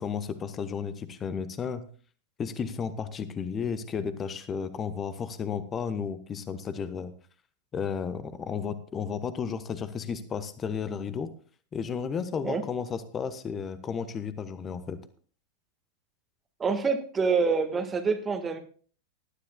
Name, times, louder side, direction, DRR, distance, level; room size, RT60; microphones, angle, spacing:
voice 1, 0.0-1.8 2.4-7.1 7.7-11.3 11.7-15.0, left 6 dB, 25° left, 13 dB, 1.1 m, -33 dB
voice 2, 16.6-18.6, right 5 dB, 20° right, 7 dB, 1.6 m, -26 dB
19.5 x 12.5 x 2.3 m, 0.41 s
figure-of-eight pair, 90°, 0 cm